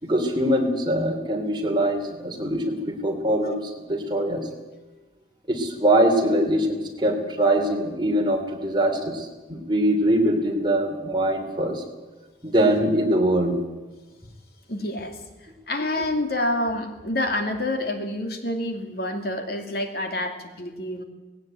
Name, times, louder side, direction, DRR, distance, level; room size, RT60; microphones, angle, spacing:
voice 1, 0.0-3.6 3.9-4.4 5.5-11.8 12.4-13.5, right 1 dB, 25° right, 2 dB, 3.1 m, -23 dB
voice 2, 14.7-15.2 15.7-21.0, left 1 dB, 55° left, 5 dB, 2.6 m, -27 dB
19.0 x 17.0 x 9.2 m, 1.2 s
head